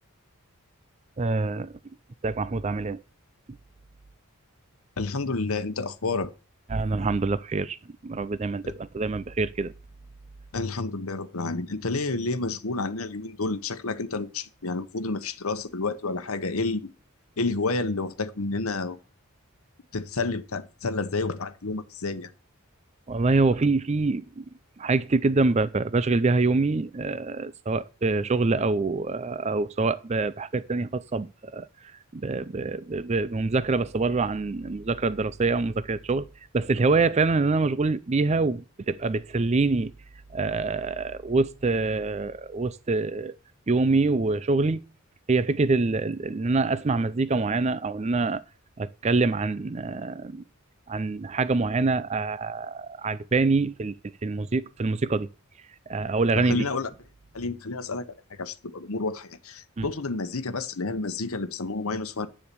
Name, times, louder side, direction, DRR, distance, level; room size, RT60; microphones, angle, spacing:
voice 1, 1.2-1.7 2.2-3.0 6.7-7.8 8.0-9.7 23.1-24.4 24.8-31.7 32.1-36.3 36.5-39.9 40.3-43.4 43.7-44.8 45.3-48.4 48.8-50.4 50.9-54.0 54.2-55.3 55.9-56.6 59.8-59.9, right 3 dB, 30° right, 0.4 m, -25 dB
voice 2, 5.0-6.3 8.6-8.7 10.5-16.9 17.4-19.0 19.9-22.3 56.3-56.9 57.3-62.3, left 3 dB, 75° left, 1.0 m, -30 dB
9.7 x 7.3 x 6.9 m
head